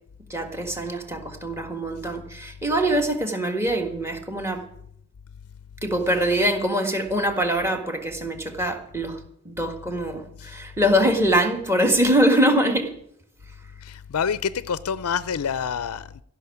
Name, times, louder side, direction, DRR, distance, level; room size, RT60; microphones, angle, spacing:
voice 1, 0.3-4.6 5.8-9.2 9.4-12.9, equal, 10° right, 1.6 m, -23 dB
voice 2, 13.8-16.2, left 7 dB, 85° left, 0.5 m, -27 dB
16.0 x 6.3 x 9.7 m
head